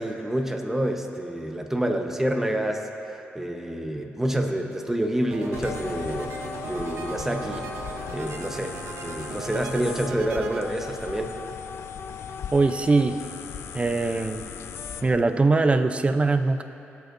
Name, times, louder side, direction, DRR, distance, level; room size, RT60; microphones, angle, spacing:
voice 1, 0.0-2.8 3.1-6.3 6.7-7.7 8.1-8.8 9.0-11.3, right 1 dB, 10° right, 3 dB, 1.0 m, -28 dB
sound 1, 5.3-10.6, right 5 dB, 80° right, 0.9 m, -38 dB
sound 2, 5.5-15.2, left 7 dB, 75° left, 0.4 m, -38 dB
voice 2, 12.5-13.2 13.7-14.5 15.0-16.6, right 3 dB, 30° right, 8 dB, 0.6 m, -21 dB
21.5 x 8.2 x 2.6 m, 2.9 s
cardioid pair, 75°, 4 cm